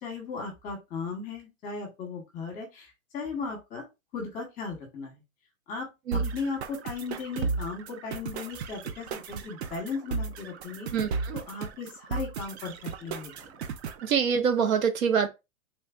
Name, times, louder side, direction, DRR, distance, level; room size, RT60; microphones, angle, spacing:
voice 1, 0.0-3.8 4.1-5.2 5.7-10.9 11.3-13.5, left 4 dB, 20° left, 1.0 m, -37 dB
sound 1, 6.1-14.1, right 4 dB, 50° right, 0.6 m, -35 dB
voice 2, 10.9-11.4 14.0-15.3, right 7 dB, 70° right, 0.9 m, -25 dB
3.3 x 3.2 x 2.3 m
hypercardioid pair, 145°, 42 cm